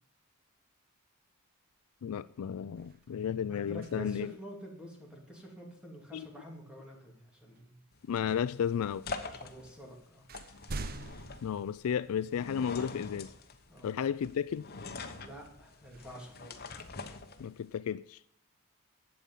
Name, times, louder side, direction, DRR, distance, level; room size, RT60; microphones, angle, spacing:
sound 1, 1.7-2.0 2.3-4.4 6.6-6.7 7.6-8.3 9.2-9.3 9.7-12.5 13.1-13.2 15.8-18.0, right 3 dB, 45° right, 0.6 m, -47 dB
voice 1, 2.0-4.3 6.1-6.3 8.1-9.1 11.4-13.3 13.8-14.7 17.4-18.2, left 8 dB, 85° left, 0.3 m, -33 dB
voice 2, 3.4-7.8 9.2-10.3 13.7-13.9 15.2-16.9, right 1 dB, 5° right, 2.8 m, -48 dB
sound 2, 7.9-17.8, left 3 dB, 45° left, 1.1 m, -45 dB
11.5 x 8.6 x 5.4 m
head